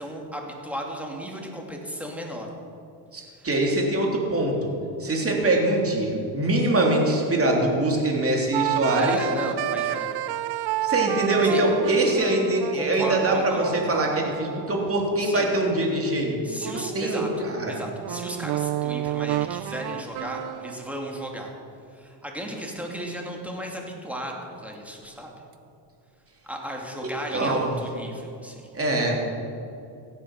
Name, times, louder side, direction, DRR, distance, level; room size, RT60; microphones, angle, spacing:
voice 1, 0.0-2.5 3.2-3.5 8.9-10.1 11.5-11.6 12.7-13.8 15.2-15.5 16.4-17.3 17.7-21.5 21.9-25.3 26.4-28.7, equal, 5° right, 0 dB, 2.7 m, -35 dB
voice 2, 3.1-4.7 5.0-9.2 10.8-16.4 16.7-17.8 27.0-27.7 28.7-29.2, right 2 dB, 25° right, -1 dB, 3.3 m, -23 dB
sound 1, 8.5-15.9 16.6-21.1, right 13 dB, 55° right, 0.6 m, -31 dB
16.0 x 8.9 x 6.6 m, 2.5 s
cardioid pair, 100°, 49 cm